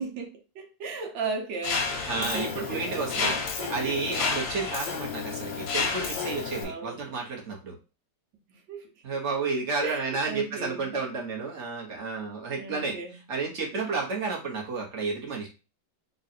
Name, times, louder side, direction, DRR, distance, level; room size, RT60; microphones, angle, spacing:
voice 1, 0.0-4.2 6.6-7.1 8.7-8.9 9.8-10.9 12.6-13.2, right 4 dB, 75° right, 1.6 m, -36 dB
Mechanisms, 1.6-6.6, left 5 dB, 75° left, 1.5 m, -31 dB
voice 2, 2.0-3.3 3.7-7.7 9.0-13.0 13.3-15.5, right 4 dB, 40° right, 1.2 m, -31 dB
3.8 x 2.4 x 4.2 m
omnidirectional pair, 2.1 m